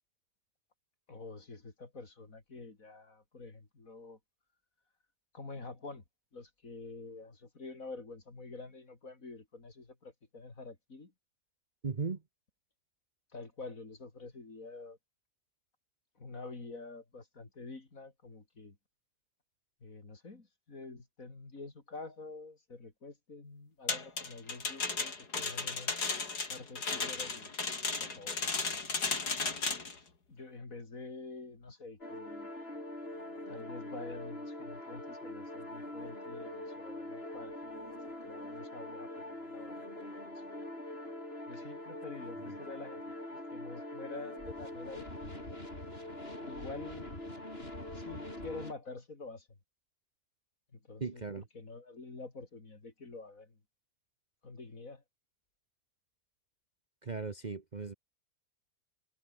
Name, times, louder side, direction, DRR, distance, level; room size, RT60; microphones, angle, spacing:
voice 1, 1.1-4.2 5.3-6.0 6.3-11.1 13.3-15.0 16.2-18.8 19.8-26.0 26.5-27.5 28.0-28.4 30.3-32.5 33.5-40.4 41.5-45.5 46.5-47.1 47.9-49.5 50.7-53.6 54.4-55.0, left 3 dB, 60° left, 3.9 m, -47 dB
voice 2, 11.8-12.2 51.0-51.4 57.0-57.9, right 4 dB, 30° right, 1.1 m, -37 dB
sound 1, 23.9-29.9, left 4 dB, 85° left, 3.8 m, -35 dB
sound 2, 32.0-48.7, left 1 dB, 40° left, 7.5 m, -43 dB
omnidirectional pair, 1.7 m